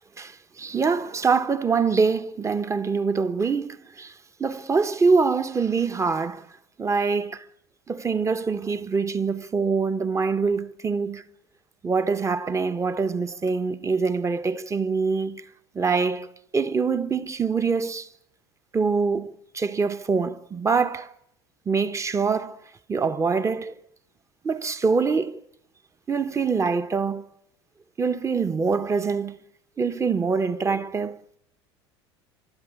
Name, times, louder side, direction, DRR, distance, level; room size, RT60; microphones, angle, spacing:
voice 1, 0.2-4.1 4.4-6.5 6.8-7.4 7.9-11.3 11.8-15.4 15.7-16.3 16.5-18.1 18.7-21.1 21.7-22.6 22.9-23.7 24.4-25.4 26.1-27.2 28.0-29.4 29.8-31.4, right 5 dB, 20° right, 1.2 m, -24 dB
28.5 x 13.0 x 8.5 m
hypercardioid pair, 70°, 14 cm